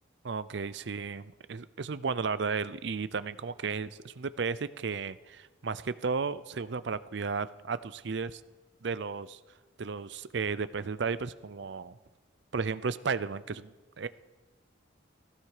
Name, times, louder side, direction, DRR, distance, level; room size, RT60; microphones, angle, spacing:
voice 1, 0.2-8.4 8.8-9.4 9.8-12.0 12.5-13.7 14.0-14.1, right 5 dB, 60° right, 15 dB, 0.5 m, -34 dB
16.0 x 15.5 x 4.9 m, 1.3 s
head